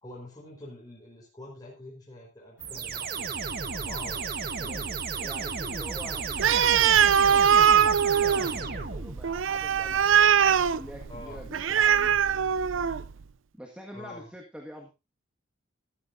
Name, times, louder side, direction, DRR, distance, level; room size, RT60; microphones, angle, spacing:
voice 1, 0.0-3.3 3.7-5.0 11.1-11.4 13.9-14.3, left 2 dB, 20° left, -4 dB, 4.5 m, -45 dB
sound 1, 2.6-8.9, left 1 dB, 60° left, 1.8 m, -48 dB
sound 2, 2.6-9.4, right 5 dB, 50° right, 1.4 m, -34 dB
voice 2, 4.6-12.4 13.5-14.9, equal, 5° right, 1 dB, 1.7 m, -46 dB
Animal, 6.4-13.1, right 8 dB, 80° right, 0.5 m, -22 dB
13.5 x 13.5 x 2.6 m, 0.26 s
head